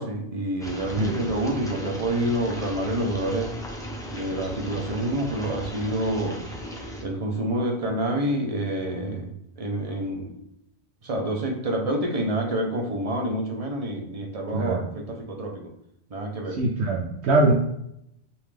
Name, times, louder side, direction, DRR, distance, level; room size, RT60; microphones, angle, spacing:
voice 1, 0.0-3.5 4.1-6.4 7.0-10.4 11.0-15.7 16.1-16.6, right 1 dB, 35° right, 1 dB, 0.8 m, -28 dB
sound 1, 0.6-7.0, equal, 5° left, 0.6 m, -37 dB
voice 2, 16.6-17.5, right 2 dB, 90° right, -1 dB, 0.9 m, -22 dB
5.4 x 2.6 x 3.3 m, 0.78 s
omnidirectional pair, 1.1 m